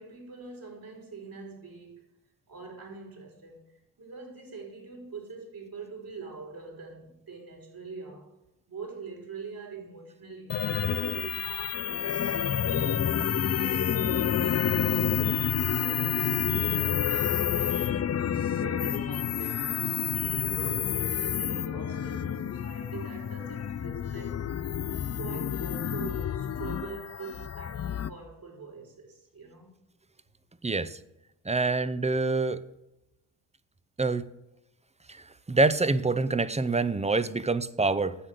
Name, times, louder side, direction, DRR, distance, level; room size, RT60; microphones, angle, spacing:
voice 1, 0.0-2.1 2.5-3.7 4.0-8.3 8.7-12.6 13.2-18.0 18.6-24.4 25.1-29.8, right 4 dB, 55° right, 0 dB, 5.0 m, -44 dB
sound 1, 10.5-28.1, left 9 dB, 40° left, 0.6 m, -29 dB
voice 2, 30.6-31.0 31.4-32.6 34.0-34.3 35.1-38.2, right 3 dB, 15° right, 15 dB, 0.8 m, -26 dB
10.0 x 7.6 x 6.7 m, 0.91 s
supercardioid pair, 55°, 41 cm